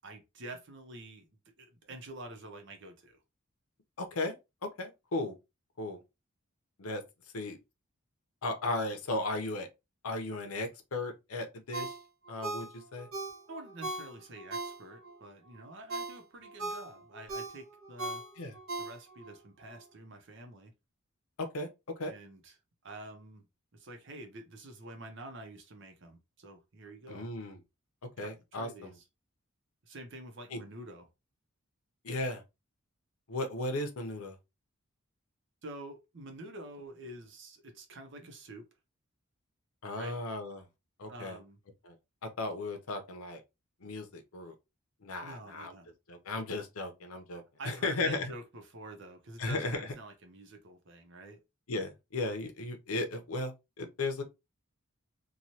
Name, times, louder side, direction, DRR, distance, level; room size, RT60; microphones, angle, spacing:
voice 1, 0.0-1.3 1.6-3.2 13.5-18.2 18.8-20.7 22.1-22.5 22.8-23.4 23.7-27.3 28.2-28.9 29.9-31.1 35.6-38.6 40.0-40.2 41.1-41.6 45.2-45.9 47.6-51.4, right 2 dB, 60° right, 0.8 m, -47 dB
voice 2, 4.0-4.4 4.6-5.4 5.8-6.0 6.8-7.0 7.3-7.6 8.4-9.7 10.0-12.0 12.3-13.1 18.4-18.5 21.4-21.7 22.0-22.1 27.1-27.6 28.2-28.9 30.5-30.6 32.0-32.4 33.3-34.4 39.8-40.7 41.0-41.4 41.8-42.0 42.2-43.4 43.8-44.5 45.0-45.7 46.1-48.3 49.4-49.8 51.7-54.2, left 2 dB, 85° left, 0.7 m, -36 dB
Ringtone, 11.7-15.2 15.6-19.3 19.7-19.8, right 2 dB, 75° right, 1.2 m, -39 dB
3.0 x 2.3 x 2.7 m
head